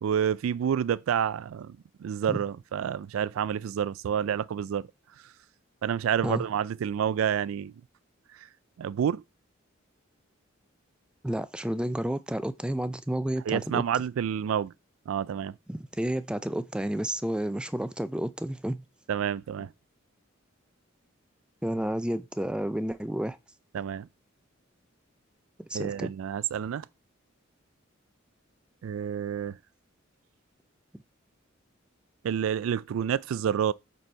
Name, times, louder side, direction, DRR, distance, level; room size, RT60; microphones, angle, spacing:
voice 1, 0.0-4.9 5.8-7.7 8.4-8.5 8.8-9.2 13.5-14.7 15.1-15.5 19.1-19.7 23.7-24.1 25.7-26.9 28.8-29.6 32.2-33.7, right 8 dB, 80° right, 0.3 m, -29 dB
voice 2, 11.2-13.8 15.7-18.8 21.6-23.4 25.6-26.1, right 1 dB, 5° right, 0.4 m, -31 dB
8.0 x 4.1 x 4.4 m
head